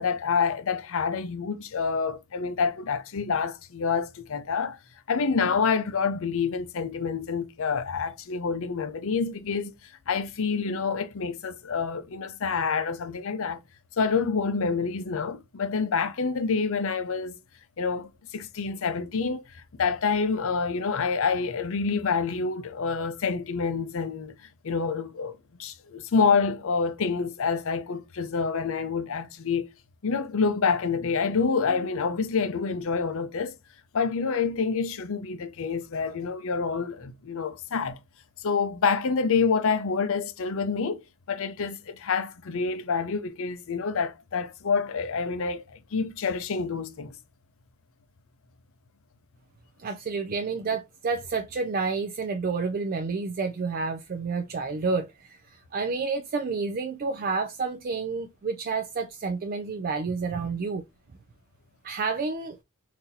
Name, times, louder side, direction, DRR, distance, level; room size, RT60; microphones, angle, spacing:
voice 1, 0.0-4.8 5.1-9.7 10.1-13.6 14.0-17.4 17.8-24.3 24.6-29.6 30.0-33.5 33.9-38.0 38.4-41.0 41.3-47.2, left 5 dB, 65° left, 0.6 m, -27 dB
voice 2, 49.8-60.8 61.8-62.6, right 4 dB, 40° right, 0.4 m, -30 dB
4.0 x 2.7 x 2.6 m
head